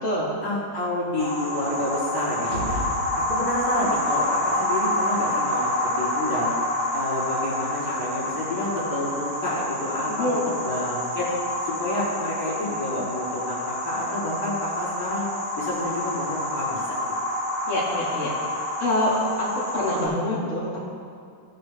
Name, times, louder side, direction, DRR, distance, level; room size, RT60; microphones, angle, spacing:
voice 1, 0.4-2.8 3.1-6.5 6.9-10.3 10.6-11.3 11.7-15.3 15.6-17.0, left 1 dB, 75° left, -11 dB, 3.7 m, -29 dB
sound 1, 1.2-20.0, left 1 dB, 15° right, 1.4 m, -28 dB
sound 2, 2.4-4.5, right 1 dB, 80° right, 2.2 m, -35 dB
voice 2, 10.1-10.4 17.7-18.3 18.8-19.1 19.4-20.8, left 1 dB, 45° left, -7 dB, 2.6 m, -25 dB
18.0 x 6.6 x 3.5 m, 2.3 s
omnidirectional pair, 1.8 m